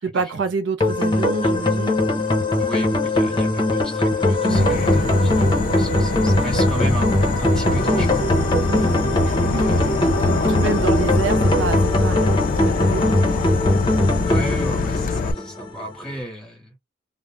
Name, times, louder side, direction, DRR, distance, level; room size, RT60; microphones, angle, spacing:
voice 1, 0.0-2.0 4.4-4.7 8.7-8.9 9.2-9.6 10.0-13.4, right 4 dB, 65° right, 0.5 m, -28 dB
sound 1, 0.8-15.9, left 1 dB, 25° left, 0.7 m, -20 dB
voice 2, 2.6-8.2 9.5-10.5 14.2-16.8, equal, 5° left, 1.1 m, -34 dB
Insect / Frog, 4.5-15.3, left 4 dB, 45° left, 0.3 m, -24 dB
2.4 x 2.0 x 3.1 m
head